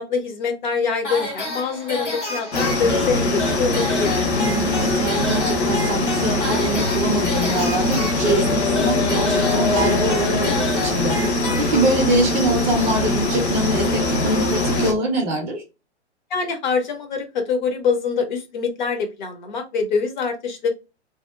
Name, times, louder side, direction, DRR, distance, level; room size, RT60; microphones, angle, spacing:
voice 1, 0.0-4.2 16.3-20.7, left 5 dB, 40° left, 5 dB, 0.7 m, -24 dB
sound 1, 1.0-12.2, left 2 dB, 85° left, 1.2 m, -30 dB
sound 2, 2.5-14.9, left 2 dB, 65° left, 0.8 m, -22 dB
voice 2, 4.3-11.2 11.5-15.6, right 2 dB, 15° right, 1 dB, 0.5 m, -24 dB
2.7 x 2.1 x 2.3 m, 0.27 s
figure-of-eight pair, 115°, 35 cm